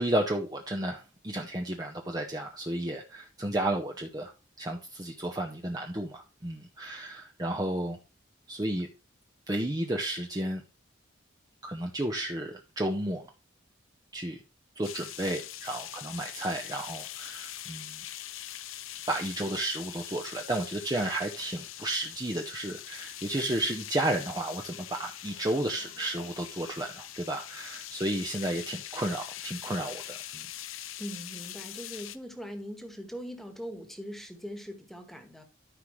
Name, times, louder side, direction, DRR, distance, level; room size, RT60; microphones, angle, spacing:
voice 1, 0.0-4.3 4.6-8.0 8.5-8.9 9.5-10.6 11.6-13.3 14.1-14.4 14.8-18.0 19.1-30.5, right 1 dB, 20° right, 0.8 m, -32 dB
sound 1, 14.8-32.2, left 12 dB, 90° left, 0.7 m, -43 dB
voice 2, 31.0-35.4, equal, ahead, 1.5 m, -41 dB
13.5 x 5.6 x 3.2 m
head